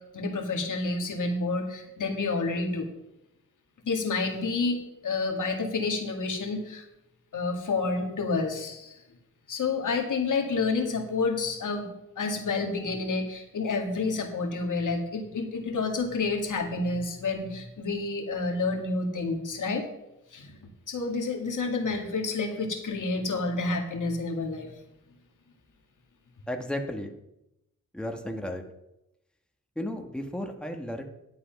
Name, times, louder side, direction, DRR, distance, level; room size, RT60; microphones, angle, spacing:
voice 1, 0.1-2.9 3.8-4.8 5.0-6.9 7.3-9.0 9.5-11.9 12.2-19.9 20.3-20.5 20.9-24.7, left 3 dB, 75° left, 3 dB, 2.1 m, -29 dB
voice 2, 26.5-27.2 27.9-28.6 29.7-31.0, left 1 dB, 5° left, 4 dB, 1.5 m, -34 dB
11.5 x 8.2 x 5.9 m, 0.87 s
cardioid pair, 70°, 31 cm